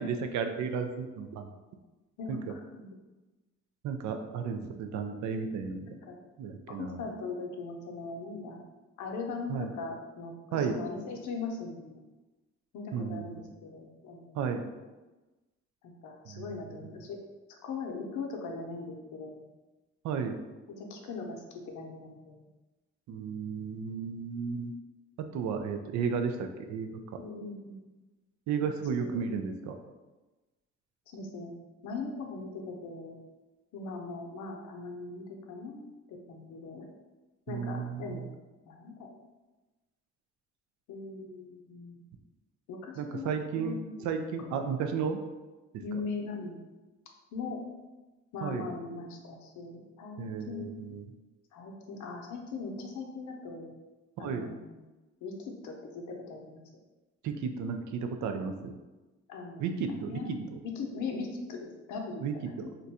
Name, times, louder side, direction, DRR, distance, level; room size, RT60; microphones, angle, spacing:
voice 1, 0.0-1.5 2.3-2.4 3.8-5.9 6.4-7.0 9.5-9.7 10.5-10.8 12.9-13.5 14.3-14.7 16.2-16.8 20.0-20.4 23.1-24.7 25.2-26.9 28.5-29.8 37.5-38.3 43.0-43.8 44.0-45.2 45.9-46.0 48.4-48.7 50.2-51.1 54.2-54.4 57.2-58.7 59.6-60.6 62.2-62.7, right 6 dB, 70° right, 6 dB, 0.4 m, -33 dB
voice 2, 2.2-3.0 5.8-6.2 6.7-8.6 9.0-12.0 12.7-14.4 15.8-17.2 17.5-19.4 20.7-22.5 27.2-27.8 29.0-29.4 31.1-31.5 31.8-33.2 33.7-36.9 37.5-38.3 38.6-39.1 40.9-42.0 42.7-44.1 45.8-46.6 47.3-47.6 48.3-50.7 51.5-53.7 54.2-54.9 55.2-56.6 59.3-62.9, left 4 dB, 75° left, 1 dB, 0.6 m, -40 dB
2.5 x 2.2 x 4.0 m, 1.1 s
cardioid pair, 90°, 30 cm